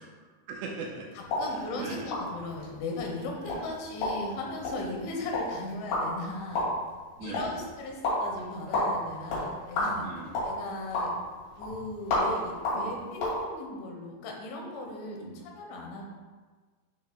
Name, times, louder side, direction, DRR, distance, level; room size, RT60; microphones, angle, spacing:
voice 1, 0.0-1.1 1.5-2.1 3.4-3.7 5.2-5.3 7.2-7.6 10.0-10.4 12.7-13.0 15.2-15.4, right 4 dB, 80° right, -2 dB, 2.7 m, -41 dB
voice 2, 1.2-6.7 7.2-10.1 10.4-11.1 11.6-16.1, left 2 dB, 80° left, 0 dB, 3.4 m, -37 dB
sound 1, 1.2-13.4, left 1 dB, 55° left, 3.6 m, -33 dB
10.5 x 5.6 x 2.2 m, 1.4 s
omnidirectional pair, 5.6 m